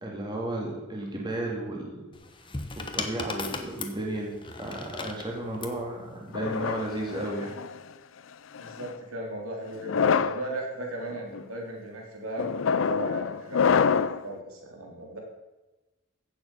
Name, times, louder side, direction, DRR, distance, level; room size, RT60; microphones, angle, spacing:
voice 1, 0.0-2.1 2.8-7.5, right 1 dB, 20° right, -1 dB, 2.1 m, -33 dB
sound 1, 2.1-5.8 6.9-7.2, left 3 dB, 25° left, 1.0 m, -37 dB
sound 2, 6.3-7.8 8.5-8.9 9.8-10.4 11.1-11.4 12.4-14.3, left 6 dB, 65° left, 0.5 m, -26 dB
voice 2, 8.6-15.2, right 1 dB, 90° right, 0 dB, 3.3 m, -37 dB
15.5 x 7.3 x 5.6 m, 1.1 s
head